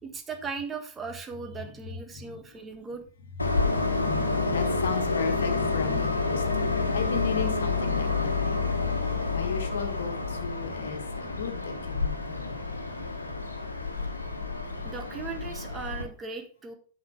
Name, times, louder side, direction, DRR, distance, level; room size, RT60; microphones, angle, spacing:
voice 1, 0.0-3.0 14.8-16.7, right 5 dB, 20° right, 6 dB, 1.4 m, -38 dB
Train, 3.4-16.0, left 3 dB, 80° left, 1.3 m, -29 dB
voice 2, 3.5-6.7 6.9-8.8 9.3-12.5, left 5 dB, 65° left, 7 dB, 1.5 m, -35 dB
9.7 x 5.3 x 4.7 m, 0.41 s
figure-of-eight pair, 90°, 0 cm